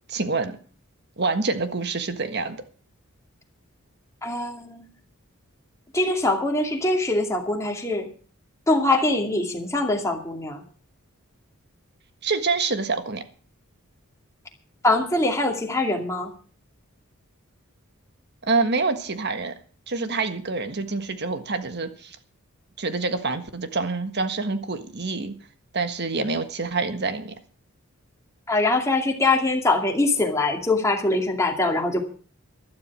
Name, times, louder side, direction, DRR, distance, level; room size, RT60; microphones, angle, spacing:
voice 1, 0.1-0.6 1.2-2.6 12.2-13.2 18.5-19.5 19.9-22.2 22.8-25.3 25.7-27.3, right 3 dB, 50° right, 9 dB, 1.5 m, -26 dB
voice 2, 4.2-4.9 5.9-8.1 8.7-10.6 14.8-16.3 28.5-32.0, left 2 dB, 15° left, 2 dB, 2.4 m, -23 dB
12.5 x 12.0 x 6.1 m, 0.42 s
head